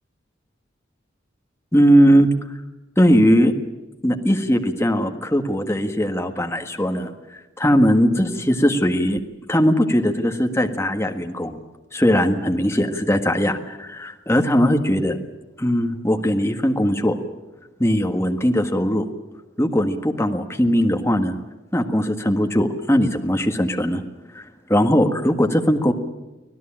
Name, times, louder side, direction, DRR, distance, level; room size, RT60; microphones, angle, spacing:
voice 1, 1.7-2.3 3.0-3.5 4.0-7.1 7.6-9.2 9.5-11.6 11.9-15.2 15.6-17.2 17.8-19.0 19.6-21.4 21.7-24.0 24.3-24.4 24.7-25.9, equal, 15° left, 5 dB, 1.6 m, -19 dB
25.5 x 17.0 x 8.8 m, 1.1 s
head